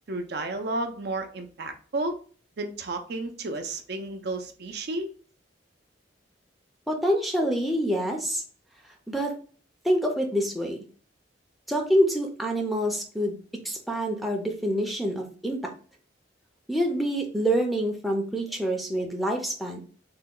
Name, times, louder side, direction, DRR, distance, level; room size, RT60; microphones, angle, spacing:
voice 1, 0.1-2.2 2.6-5.1, right 2 dB, 60° right, 6 dB, 0.5 m, -32 dB
voice 2, 6.9-8.4 9.1-9.4 9.8-10.8 11.7-13.4 13.6-15.7 16.7-19.8, equal, ahead, 0 dB, 0.5 m, -26 dB
3.4 x 2.2 x 3.6 m, 0.41 s
head